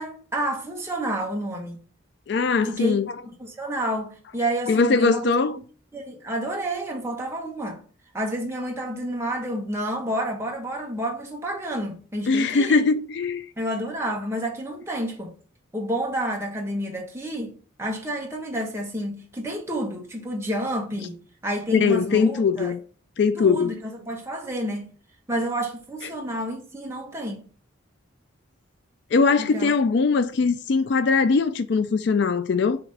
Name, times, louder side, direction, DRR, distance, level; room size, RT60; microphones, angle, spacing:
voice 1, 0.0-1.8 2.6-3.0 3.4-5.4 5.9-7.8 8.1-12.8 13.6-15.3 15.7-21.2 21.4-22.7 23.4-24.9 25.3-27.5 29.4-29.7, right 1 dB, 15° right, 1.2 m, -29 dB
voice 2, 2.3-3.1 4.7-5.6 12.3-13.4 21.7-22.8 23.2-23.7 29.1-32.8, left 4 dB, 55° left, 0.3 m, -21 dB
5.8 x 3.0 x 5.4 m
head